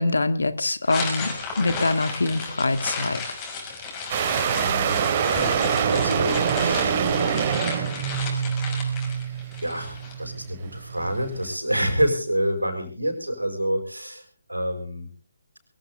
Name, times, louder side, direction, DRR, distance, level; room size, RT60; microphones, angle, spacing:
voice 1, 0.0-3.2, left 2 dB, 70° left, 12 dB, 1.8 m, -24 dB
sound 1, 0.8-10.1, left 4 dB, 20° left, 5.6 m, -34 dB
sound 2, 4.1-11.5, right 7 dB, 35° right, 2.5 m, -25 dB
voice 2, 4.5-5.1 5.8-7.6 8.4-8.8 9.6-15.1, equal, 85° right, 4 dB, 5.7 m, -28 dB
23.0 x 16.0 x 3.5 m, 0.39 s
figure-of-eight pair, 140°, 0 cm